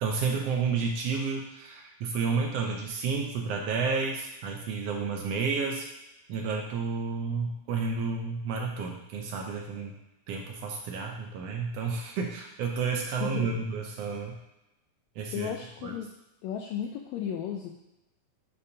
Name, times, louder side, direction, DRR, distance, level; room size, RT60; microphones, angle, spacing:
voice 1, 0.0-5.9 6.3-9.9 10.3-14.4 15.2-15.5 15.8-15.9, right 5 dB, 80° right, 1 dB, 1.4 m, -31 dB
voice 2, 13.2-13.6 15.3-16.1 16.4-17.8, left 8 dB, 80° left, 1 dB, 1.7 m, -34 dB
6.7 x 2.7 x 5.4 m, 0.93 s
omnidirectional pair, 3.4 m